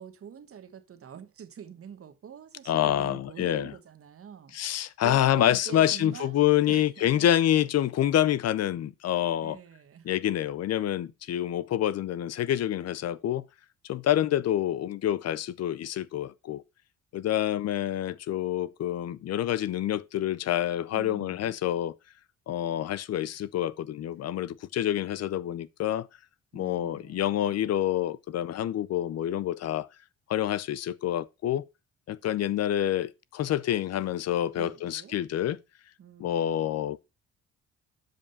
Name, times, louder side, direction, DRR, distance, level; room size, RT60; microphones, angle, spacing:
voice 1, 0.0-4.6 5.0-7.3 9.4-10.1 20.9-21.6 26.5-27.5 34.5-35.2 36.0-36.4, right 8 dB, 50° right, 1.2 m, -45 dB
voice 2, 2.7-3.7 4.5-9.6 10.1-13.4 13.8-16.6 17.1-21.9 22.5-26.1 26.5-29.9 30.3-31.7 32.1-35.6 36.2-37.1, left 11 dB, 55° left, 0.5 m, -27 dB
7.7 x 5.0 x 5.3 m
cardioid pair, 90°, 30 cm